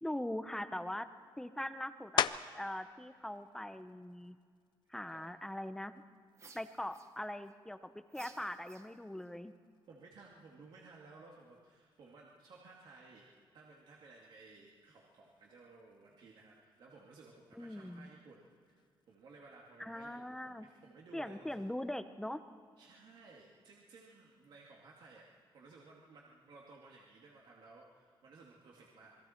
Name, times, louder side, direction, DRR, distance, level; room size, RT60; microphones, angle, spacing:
voice 1, 0.0-1.1 1.4-4.4 4.9-6.0 6.5-9.5 17.6-18.1 19.8-20.7 21.1-22.4, left 1 dB, 5° left, 10 dB, 0.7 m, -41 dB
sound 1, 2.2-2.8 3.3-7.7 8.3-13.4 13.7-19.4, left 9 dB, 60° left, 0.5 m, -43 dB
sound 2, 6.3-7.5 8.1-9.3, right 4 dB, 35° right, 1.1 m, -58 dB
voice 2, 9.9-21.7 22.8-25.3 25.5-29.2, right 3 dB, 60° right, -2 dB, 2.3 m, -57 dB
27.5 x 21.5 x 4.5 m, 2.1 s
wide cardioid pair, 170°, 9 cm